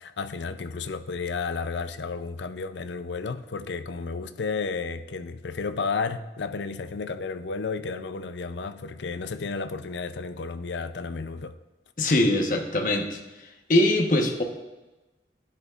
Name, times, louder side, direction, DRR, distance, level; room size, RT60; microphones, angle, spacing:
voice 1, 0.0-11.5, left 4 dB, 80° left, 11 dB, 0.5 m, -32 dB
voice 2, 12.0-13.2 13.7-14.4, left 1 dB, 45° left, 3 dB, 1.1 m, -22 dB
12.0 x 10.0 x 2.5 m, 1.1 s
head